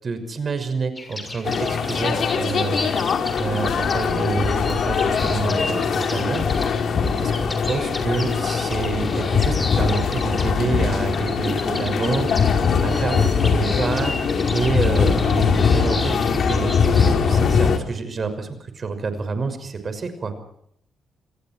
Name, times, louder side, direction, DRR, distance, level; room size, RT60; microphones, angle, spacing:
voice 1, 0.0-2.9 3.4-6.4 7.2-12.3 12.8-14.1 14.5-20.3, right 4 dB, 45° right, 9 dB, 6.1 m, -27 dB
sound 1, 1.0-17.1, left 2 dB, 20° left, 6.7 m, -35 dB
sound 2, 1.4-17.8, left 6 dB, 65° left, 3.8 m, -21 dB
29.0 x 21.5 x 4.7 m, 0.70 s
cardioid pair, 90°, 0 cm